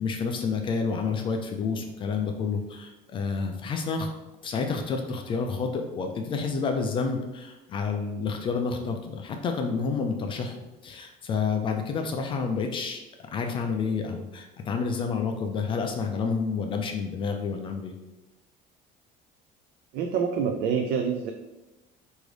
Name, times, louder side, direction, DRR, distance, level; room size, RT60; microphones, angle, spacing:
voice 1, 0.0-4.1 4.4-10.6 10.8-17.9, left 5 dB, 30° left, 4 dB, 0.3 m, -29 dB
voice 2, 19.9-21.3, right 6 dB, 65° right, 4 dB, 0.4 m, -26 dB
4.8 x 2.6 x 3.2 m, 1.0 s
cardioid pair, 165°, 17 cm